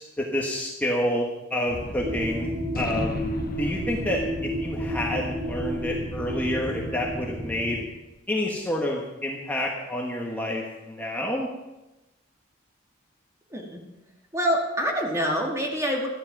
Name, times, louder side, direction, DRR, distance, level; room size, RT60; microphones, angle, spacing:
voice 1, 0.0-2.5 2.7-3.3 3.6-7.8 8.3-11.5, left 1 dB, 10° left, -2 dB, 1.3 m, -29 dB
Gunshot gunfire, 1.7-8.2, left 1 dB, 45° left, 1.3 m, -40 dB
sound 1, 2.0-7.9, equal, 55° right, 3.0 m, -31 dB
voice 2, 13.5-13.8 14.3-16.1, equal, 15° right, 0 dB, 2.2 m, -26 dB
14.5 x 10.5 x 6.0 m, 1.0 s
head